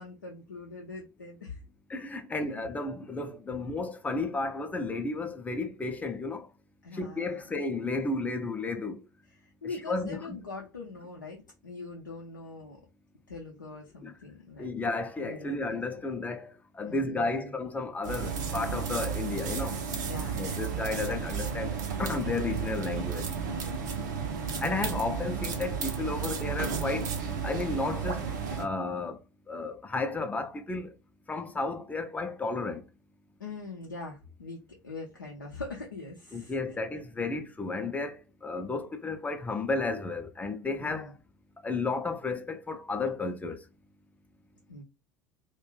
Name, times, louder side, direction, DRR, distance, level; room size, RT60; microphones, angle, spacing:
voice 1, 0.0-1.6 2.4-2.7 6.8-7.5 9.3-12.8 13.3-14.6 15.2-15.8 16.9-17.6 20.1-20.6 23.4-24.9 33.4-36.6 40.7-41.1 44.7-44.8, left 3 dB, 85° left, 0.5 m, -43 dB
voice 2, 1.9-6.5 6.9-9.0 9.9-10.4 14.0-14.1 14.6-19.8 20.4-23.3 24.6-27.1 27.4-28.3 28.6-29.2 29.5-30.9 31.3-32.9 36.3-41.2 41.6-43.6, left 3 dB, 15° left, 0.5 m, -33 dB
sound 1, 18.0-28.7, right 6 dB, 65° right, 0.6 m, -33 dB
2.4 x 2.2 x 3.1 m
figure-of-eight pair, 70°, 10 cm